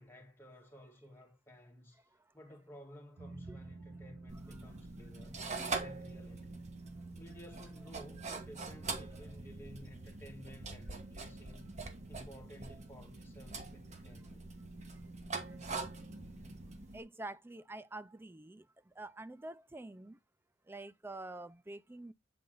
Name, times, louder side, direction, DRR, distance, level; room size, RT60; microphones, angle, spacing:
voice 1, 0.0-2.0 2.3-5.4 5.8-6.6 7.2-11.6 12.1-14.5, equal, 15° left, 2.2 m, -55 dB
sound 1, 3.2-16.7, right 2 dB, 75° right, 2.0 m, -51 dB
sound 2, 4.3-17.0, right 4 dB, 40° right, 1.3 m, -44 dB
voice 2, 16.9-20.2 20.7-22.1, right 2 dB, 10° right, 0.4 m, -47 dB
7.8 x 4.2 x 3.8 m
head